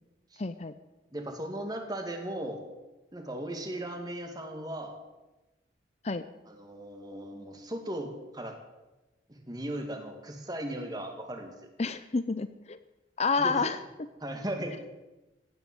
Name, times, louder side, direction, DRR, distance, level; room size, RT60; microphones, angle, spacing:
voice 1, 0.4-0.7 6.0-6.2 11.8-12.8 13.2-14.1, left 4 dB, 35° left, 12 dB, 0.6 m, -29 dB
voice 2, 1.1-2.6 3.1-5.0 6.5-8.6 9.3-11.5 13.4-13.6 14.2-14.9, right 1 dB, 20° right, 4 dB, 2.3 m, -37 dB
16.5 x 11.0 x 7.8 m, 1.1 s
head